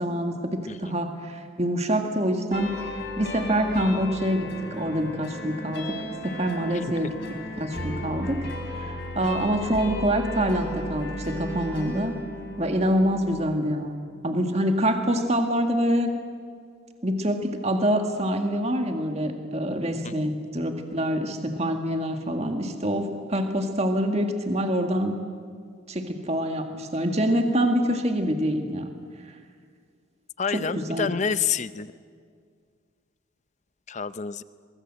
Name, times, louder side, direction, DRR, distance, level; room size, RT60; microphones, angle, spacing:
voice 1, 0.0-6.0 6.2-7.1 7.6-8.5 8.8-12.1 12.6-13.9 14.2-16.1 17.0-25.2 25.9-28.9 30.5-31.1, equal, 30° right, 5 dB, 1.9 m, -26 dB
voice 2, 0.7-1.0 20.0-20.1 30.4-31.9 33.9-34.4, left 6 dB, 35° left, 14 dB, 0.6 m, -28 dB
sound 1, 2.5-13.6, left 1 dB, 55° left, 3.9 m, -35 dB
23.5 x 22.5 x 7.7 m, 2.1 s
head